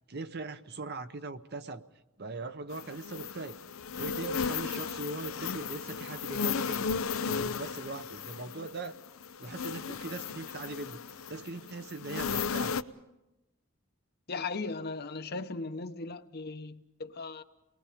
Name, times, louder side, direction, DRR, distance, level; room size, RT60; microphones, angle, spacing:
voice 1, 0.1-1.8 2.2-3.6 3.9-6.9 7.2-9.0 9.4-11.0 11.3-12.8, right 3 dB, 55° right, 10 dB, 0.9 m, -40 dB
sound 1, 2.7-12.8, left 6 dB, 85° left, 0.7 m, -35 dB
voice 2, 14.3-17.4, left 3 dB, 50° left, 9 dB, 0.9 m, -37 dB
28.5 x 20.5 x 5.1 m, 0.95 s
head